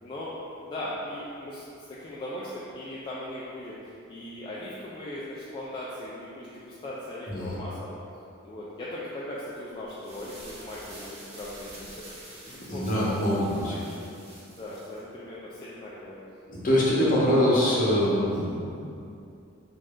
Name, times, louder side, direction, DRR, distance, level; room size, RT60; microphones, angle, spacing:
voice 1, 0.0-0.3 0.6-1.6 1.9-7.9 8.4-12.0 12.4-13.1 13.7-14.0 14.3-16.2, left 1 dB, 25° left, -8 dB, 0.3 m, -39 dB
sound 1, 9.8-15.0, right 1 dB, 30° right, 0.6 m, -47 dB
voice 2, 12.7-13.7 16.5-19.0, equal, 40° left, -7 dB, 0.8 m, -24 dB
3.1 x 2.6 x 3.6 m, 2.6 s
head